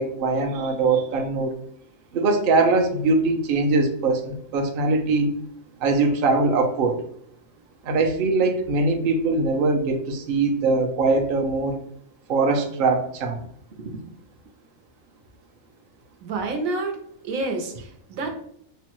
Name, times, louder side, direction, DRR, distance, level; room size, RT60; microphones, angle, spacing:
voice 1, 0.0-1.6 2.1-5.3 5.8-7.0 7.8-11.8 12.3-13.4, right 3 dB, 55° right, 3 dB, 0.6 m, -22 dB
voice 2, 16.2-17.0 17.2-18.4, right 3 dB, 85° right, 3 dB, 1.1 m, -28 dB
5.4 x 2.2 x 2.9 m, 0.67 s
omnidirectional pair, 1.4 m